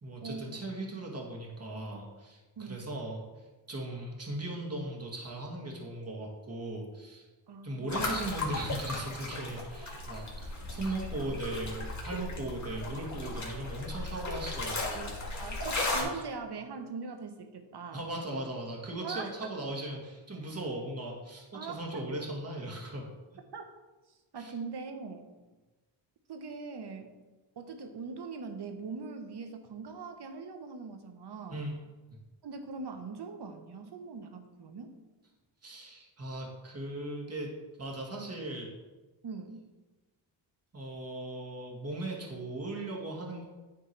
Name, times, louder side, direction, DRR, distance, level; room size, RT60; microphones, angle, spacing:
voice 1, 0.0-3.2 3.7-7.3 7.6-15.5 16.0-16.2 17.9-23.1 24.4-24.5 31.5-31.8 35.6-37.5 37.8-38.7 40.7-43.4, right 1 dB, 30° right, -2 dB, 2.0 m, -38 dB
voice 2, 7.5-8.2 15.4-18.0 19.0-19.3 21.5-22.0 23.5-23.6 24.3-25.3 26.3-27.1 27.6-31.6 32.4-35.0 39.2-39.7, right 4 dB, 50° right, 6 dB, 1.1 m, -41 dB
sound 1, 7.9-16.0, left 2 dB, 35° left, 2.0 m, -36 dB
9.5 x 3.6 x 4.6 m, 1.2 s
cardioid pair, 65°, 49 cm